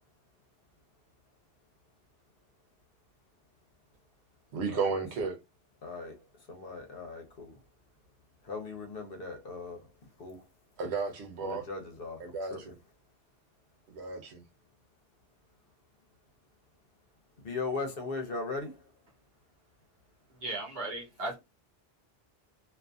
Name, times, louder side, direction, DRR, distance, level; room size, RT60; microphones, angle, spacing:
voice 1, 4.5-5.4 10.8-11.6 12.2-12.8 13.9-14.5, right 4 dB, 90° right, 1.0 m, -33 dB
voice 2, 5.8-6.2 6.5-7.5 8.4-9.9 10.2-10.4 11.4-12.6 17.4-18.8, left 3 dB, 65° left, 1.0 m, -38 dB
voice 3, 20.4-21.4, right 2 dB, 70° right, 1.3 m, -36 dB
2.5 x 2.5 x 2.3 m
omnidirectional pair, 1.1 m